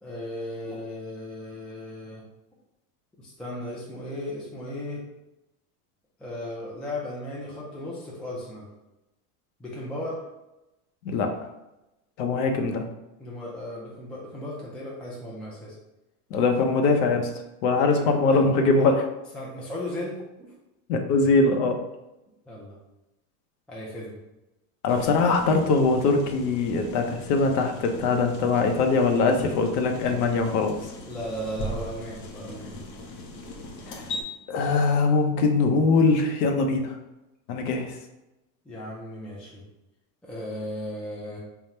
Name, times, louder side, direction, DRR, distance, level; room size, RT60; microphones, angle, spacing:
voice 1, 0.0-2.2 3.2-5.0 6.2-8.7 9.6-10.2 13.2-15.7 17.9-18.4 18.8-18.9 19.3-20.5 22.5-22.8 23.7-24.2 30.3-30.5 31.1-32.8 38.7-39.6 40.2-41.4, left 1 dB, ahead, -5 dB, 0.4 m, -36 dB
voice 2, 11.0-11.5 12.2-12.9 16.3-17.3 17.6-19.1 20.9-21.8 24.8-30.8 33.8-34.1 34.5-37.0 37.5-38.0, left 3 dB, 70° left, 5 dB, 0.8 m, -22 dB
sound 1, 24.9-34.2, left 1 dB, 45° left, 0.8 m, -39 dB
3.7 x 2.3 x 4.1 m, 0.94 s
supercardioid pair, 130°, 46 cm